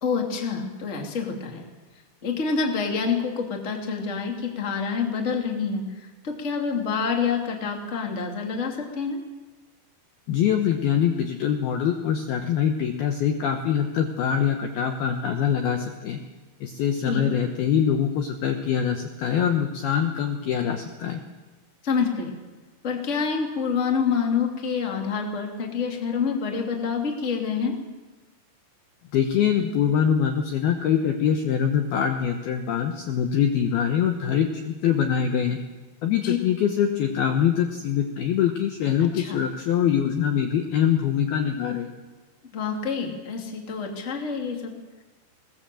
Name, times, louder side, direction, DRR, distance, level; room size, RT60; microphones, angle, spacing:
voice 1, 0.0-1.6 2.2-9.2 17.0-17.2 21.8-22.4 22.8-27.8 36.2-36.4 39.1-39.4 42.5-44.7, left 5 dB, 25° left, 2 dB, 1.7 m, -27 dB
voice 2, 10.3-16.2 16.6-21.2 29.1-35.6 36.0-41.9, left 8 dB, 70° left, 5 dB, 2.4 m, -24 dB
21.0 x 19.5 x 7.7 m, 1.2 s
omnidirectional pair, 5.8 m